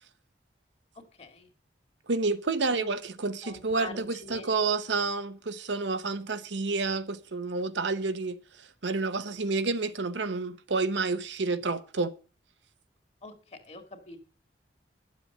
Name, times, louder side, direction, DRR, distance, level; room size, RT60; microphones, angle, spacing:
voice 1, 0.9-1.5 2.7-2.9 3.4-4.5 13.2-14.2, left 3 dB, 35° left, 2.2 m, -44 dB
voice 2, 2.1-8.4 8.8-12.1, right 3 dB, 75° right, 0.9 m, -29 dB
11.5 x 7.6 x 6.6 m
head